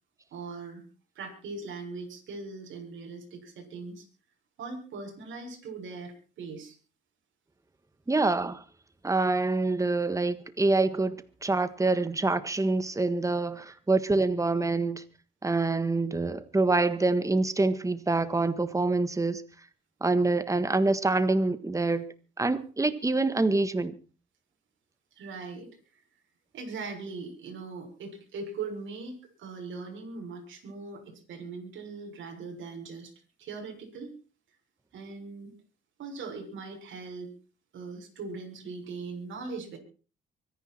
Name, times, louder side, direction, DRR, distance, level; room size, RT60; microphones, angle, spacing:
voice 1, 0.3-0.8 1.1-4.1 4.6-6.7 13.7-13.8 25.1-25.7 26.5-33.1 33.4-34.1 34.9-35.5 36.0-37.3 37.7-39.8, right 4 dB, 75° right, 6.7 m, -40 dB
voice 2, 8.1-8.6 9.0-15.0 15.4-19.4 20.0-22.0 22.4-24.0, right 3 dB, 15° right, 1.6 m, -26 dB
24.5 x 10.5 x 4.4 m
cardioid pair, 90°, 20 cm